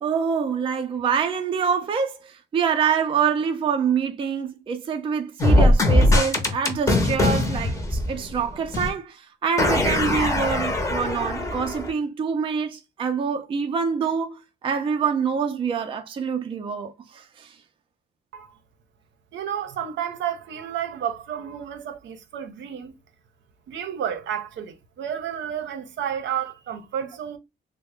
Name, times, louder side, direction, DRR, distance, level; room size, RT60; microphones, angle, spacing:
voice 1, 0.0-17.5, right 6 dB, 30° right, 0.4 m, -26 dB
sound 1, 5.4-8.5 8.7-8.9 9.6-11.9, left 1 dB, 15° left, 0.7 m, -21 dB
voice 2, 19.3-22.9 23.7-27.4, right 9 dB, 75° right, 0.6 m, -31 dB
3.2 x 2.0 x 3.5 m
wide cardioid pair, 175°, 19 cm